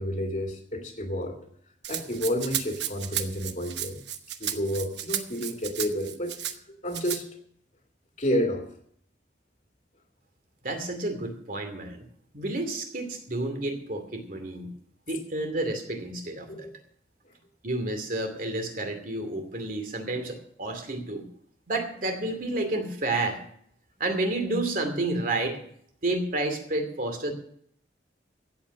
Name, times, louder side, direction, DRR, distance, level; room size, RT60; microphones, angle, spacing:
voice 1, 0.0-1.4 1.9-4.0 4.4-7.3 8.2-8.6 16.5-16.7, equal, 45° left, 1 dB, 2.2 m, -30 dB
Rattle (instrument), 1.8-6.6 6.9-7.2, right 10 dB, 70° right, 1.1 m, -33 dB
voice 2, 10.6-12.1 12.3-14.7 15.1-16.7 17.6-21.3 21.7-23.4 24.0-25.6 26.0-27.3, right 2 dB, 50° right, 6 dB, 2.5 m, -30 dB
15.5 x 8.2 x 6.3 m, 0.66 s
head